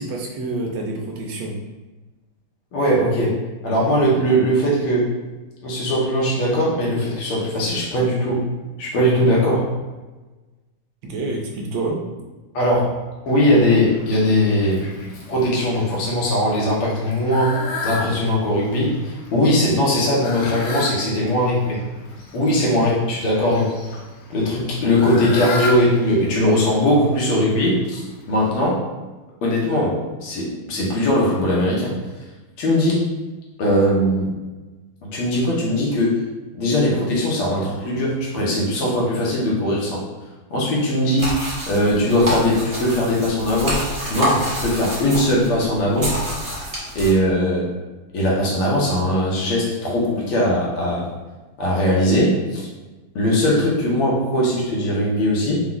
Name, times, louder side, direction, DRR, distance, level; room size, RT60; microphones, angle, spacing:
voice 1, 0.0-1.5 11.0-12.0 22.8-22.9, right 2 dB, 70° right, 0 dB, 1.3 m, -27 dB
voice 2, 2.7-5.2 5.6-8.5 8.8-9.7 12.5-13.0 13.3-14.9 15.3-21.8 22.3-24.0 24.3-28.8 29.4-32.2 32.6-33.0 33.6-34.3 35.0-36.2 36.6-40.0 40.5-43.8 44.1-46.1 47.0-47.7 48.1-51.1 51.6-52.7 53.2-55.6, equal, 80° left, -4 dB, 2.0 m, -20 dB
Fowl, 13.3-28.6, left 2 dB, 65° left, 1.1 m, -35 dB
sound 1, 41.2-47.1, right 1 dB, 25° right, 0.9 m, -27 dB
4.6 x 2.3 x 3.8 m, 1.2 s
omnidirectional pair, 2.3 m